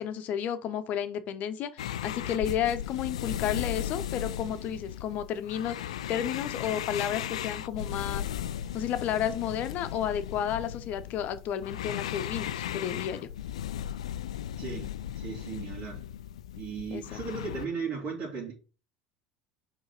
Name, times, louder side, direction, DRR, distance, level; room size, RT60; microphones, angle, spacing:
voice 1, 0.0-8.3 8.7-13.3 16.9-17.2, left 9 dB, 50° left, 1.0 m, -32 dB
sound 1, 1.8-17.7, left 10 dB, 80° left, 0.3 m, -36 dB
voice 2, 14.6-16.1 16.6-18.5, right 5 dB, 50° right, 2.6 m, -36 dB
4.8 x 4.0 x 5.5 m
hypercardioid pair, 75°, 3 cm